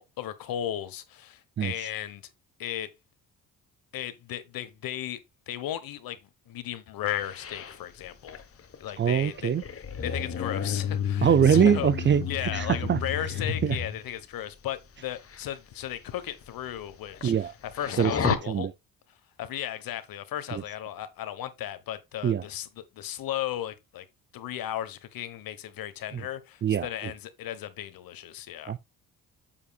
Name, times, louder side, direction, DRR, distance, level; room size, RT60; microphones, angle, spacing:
voice 1, 0.0-2.3 2.6-2.9 3.9-5.2 5.5-6.2 6.5-8.4 8.8-9.5 10.0-11.9 12.3-18.7 19.4-24.1 24.3-28.7, left 12 dB, 75° left, 1.2 m, -35 dB
sound 1, 7.1-14.0 15.1-15.4 15.8-15.9 16.4-16.5 16.7-17.4 17.7-18.4, left 7 dB, 40° left, 1.2 m, -31 dB
voice 2, 9.0-9.6 11.2-13.0 13.6-13.7 17.2-17.5 18.0-18.1 18.5-18.7 20.5-20.6 22.2-22.4 26.6-26.9 28.7-28.8, right 8 dB, 35° right, 0.4 m, -23 dB
8.8 x 7.1 x 2.4 m
cardioid pair, 80°, 36 cm